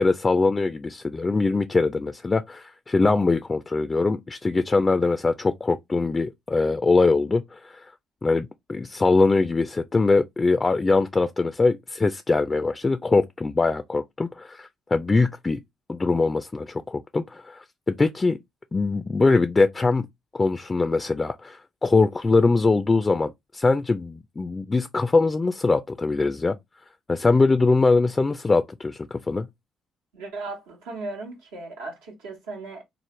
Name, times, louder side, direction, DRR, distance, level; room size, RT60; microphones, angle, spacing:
voice 1, 0.0-7.8 8.2-15.6 15.9-17.6 18.0-18.4 18.7-20.1 20.3-26.6 27.1-29.5, left 3 dB, 30° left, 0.3 m, -22 dB
voice 2, 30.1-32.8, right 3 dB, 85° right, 1.1 m, -36 dB
3.1 x 2.0 x 3.1 m
hypercardioid pair, 55°, 0 cm